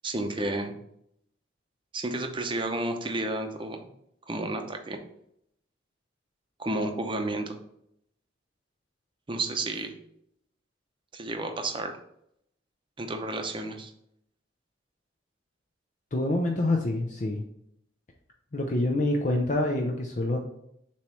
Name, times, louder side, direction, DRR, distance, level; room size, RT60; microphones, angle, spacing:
voice 1, 0.0-0.8 1.9-3.9 4.3-5.0 6.6-7.6 9.3-9.9 11.1-11.9 13.0-13.9, right 2 dB, 25° right, 5 dB, 0.8 m, -31 dB
voice 2, 16.1-17.4 18.5-20.4, left 1 dB, 40° left, 2 dB, 0.6 m, -26 dB
7.2 x 3.1 x 4.6 m, 0.74 s
head